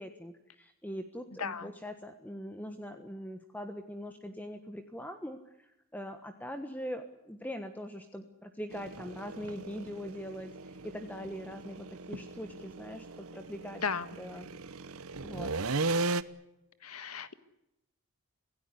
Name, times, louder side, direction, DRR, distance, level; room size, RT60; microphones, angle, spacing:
voice 1, 0.0-13.8 14.2-14.5 15.2-15.5, equal, 5° left, 7 dB, 1.3 m, -42 dB
voice 2, 1.4-1.7 13.8-14.1 16.8-17.3, left 6 dB, 85° left, 13 dB, 1.7 m, -35 dB
sound 1, 8.7-16.2, right 3 dB, 75° right, 1.1 m, -37 dB
26.5 x 17.0 x 9.6 m, 0.91 s
head